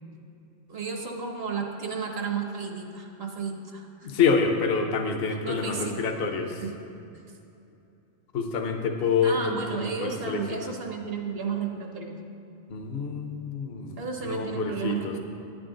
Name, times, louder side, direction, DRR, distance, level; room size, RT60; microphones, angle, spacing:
voice 1, 0.7-4.1 5.4-5.9 6.6-6.7 9.2-12.2 14.0-15.2, right 5 dB, 55° right, 2 dB, 1.2 m, -32 dB
voice 2, 4.0-6.6 8.3-10.8 12.7-15.1, left 5 dB, 55° left, 4 dB, 0.9 m, -27 dB
9.9 x 9.0 x 3.8 m, 2.8 s
omnidirectional pair, 1.3 m